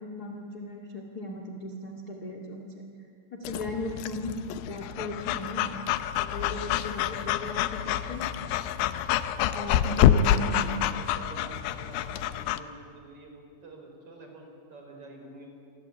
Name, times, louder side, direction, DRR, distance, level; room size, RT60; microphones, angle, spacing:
voice 1, 0.0-2.8 3.3-4.4 4.6-5.7 6.2-8.3 9.5-10.6, left 2 dB, 50° left, 2 dB, 1.1 m, -37 dB
Breathing / Dog, 3.4-12.6, left 10 dB, 75° left, 2.5 m, -27 dB
voice 2, 9.8-15.5, right 1 dB, 30° right, 2 dB, 5.4 m, -46 dB
28.0 x 24.0 x 8.6 m, 2.3 s
omnidirectional pair, 5.5 m